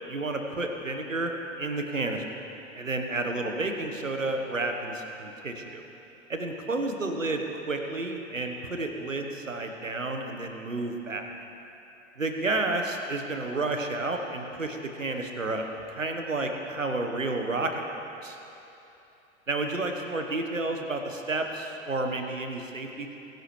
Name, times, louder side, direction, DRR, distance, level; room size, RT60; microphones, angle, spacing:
voice 1, 0.1-1.3 1.6-2.2 2.7-5.8 6.3-11.3 12.2-18.4 19.5-23.2, right 2 dB, 85° right, 4 dB, 1.3 m, -31 dB
22.0 x 10.5 x 3.3 m, 3.0 s
figure-of-eight pair, 100°, 38 cm